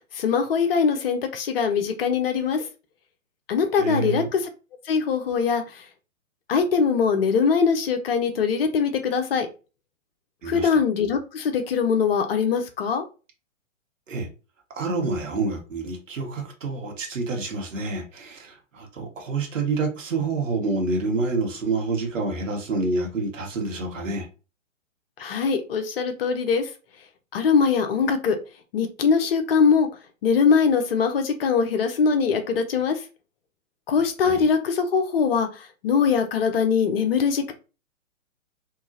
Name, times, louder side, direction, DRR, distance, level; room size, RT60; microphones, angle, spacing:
voice 1, 0.1-2.6 3.5-4.4 4.9-5.8 6.5-9.5 10.5-13.0 25.2-26.7 27.3-28.4 28.7-29.9 30.2-33.0 33.9-37.5, left 6 dB, 45° left, 0.8 m, -22 dB
voice 2, 3.8-4.3 10.4-10.7 14.1-14.3 14.8-24.3 34.2-34.5, right 3 dB, 70° right, 1.5 m, -28 dB
3.8 x 2.7 x 2.7 m
figure-of-eight pair, 125°, 39 cm